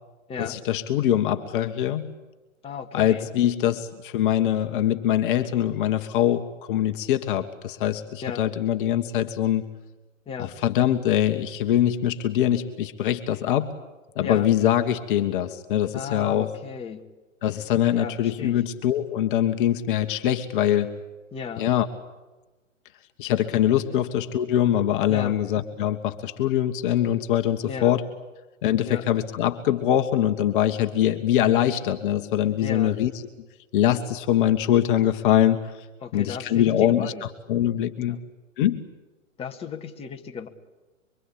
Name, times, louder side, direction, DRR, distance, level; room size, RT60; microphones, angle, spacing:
voice 1, 0.4-2.1 2.9-9.7 10.4-13.7 14.1-16.5 17.4-20.9 21.6-21.9 23.2-28.0 28.6-33.1 33.7-35.8 36.1-38.2 38.6-38.8, left 11 dB, 40° left, 6 dB, 1.6 m, -23 dB
voice 2, 2.6-3.3 8.2-8.4 10.3-10.6 14.2-14.5 15.9-17.0 17.9-18.6 21.3-21.7 23.9-24.0 25.1-25.4 27.7-27.9 28.9-29.1 32.6-33.0 36.0-37.2 38.1-38.2 39.4-40.5, left 6 dB, 15° left, 2 dB, 2.0 m, -35 dB
25.0 x 25.0 x 8.7 m, 1.2 s
hypercardioid pair, 135°, 40 cm